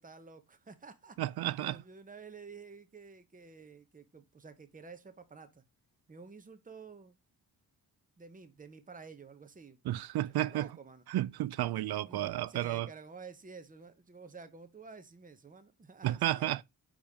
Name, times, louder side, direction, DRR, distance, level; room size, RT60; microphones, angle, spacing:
voice 1, 0.0-1.2 1.6-5.6 6.1-7.2 8.2-9.8 10.4-11.0 11.7-16.6, right 4 dB, 20° right, 0.9 m, -51 dB
voice 2, 1.2-1.8 9.9-10.7 11.1-12.9 16.0-16.6, right 14 dB, 70° right, 0.5 m, -32 dB
5.3 x 5.0 x 3.6 m
wide cardioid pair, 110°, 39 cm